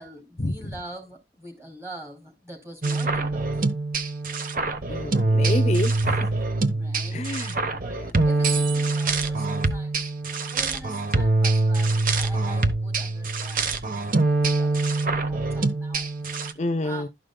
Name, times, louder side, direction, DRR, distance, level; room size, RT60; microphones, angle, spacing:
voice 1, 0.0-3.5 6.8-7.4 7.8-10.1 10.5-16.5 16.8-17.0, right 2 dB, 15° right, 2.7 m, -44 dB
sound 1, 2.8-16.5, right 3 dB, 45° right, 0.9 m, -24 dB
voice 2, 4.9-6.3 7.1-7.6 16.6-17.1, left 1 dB, 35° left, 0.6 m, -28 dB
12.5 x 5.1 x 2.2 m
head